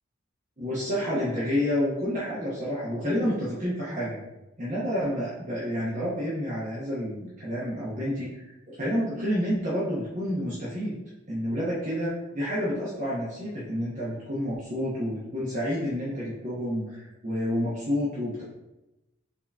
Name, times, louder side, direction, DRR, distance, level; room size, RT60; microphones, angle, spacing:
voice 1, 0.6-4.2 4.6-11.0 11.3-18.4, equal, 40° right, -8 dB, 0.9 m, -29 dB
4.7 x 2.8 x 3.4 m, 0.97 s
head